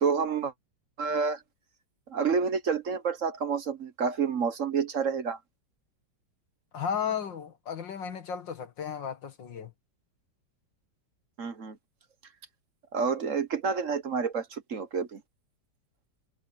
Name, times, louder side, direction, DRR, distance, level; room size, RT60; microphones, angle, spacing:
voice 1, 0.0-0.5 1.0-1.4 2.1-5.4 11.4-11.8 12.9-15.2, right 5 dB, 50° right, 1.4 m, -29 dB
voice 2, 6.7-9.7, left 7 dB, 90° left, 2.4 m, -34 dB
omnidirectional pair, 1.9 m